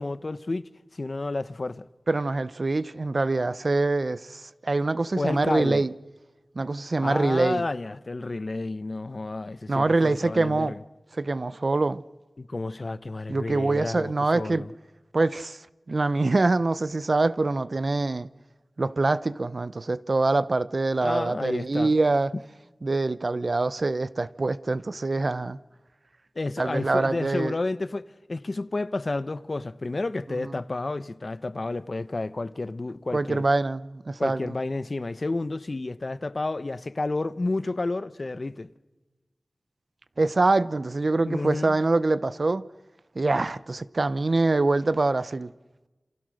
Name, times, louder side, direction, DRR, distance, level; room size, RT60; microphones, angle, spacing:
voice 1, 0.0-1.8 5.2-5.8 7.0-10.8 12.4-14.7 21.0-22.0 26.3-28.0 28.3-33.4 34.2-38.7 41.3-41.8, left 2 dB, 55° left, 1.0 m, -31 dB
voice 2, 2.1-5.9 6.6-7.6 9.7-10.8 11.2-12.0 13.3-14.7 15.1-15.6 15.9-18.3 18.8-22.3 22.8-25.6 26.6-27.6 30.4-30.5 33.1-34.5 40.2-42.7 43.1-45.5, right 3 dB, 60° right, 0.8 m, -24 dB
28.5 x 27.5 x 6.5 m
wide cardioid pair, 55°, 0 cm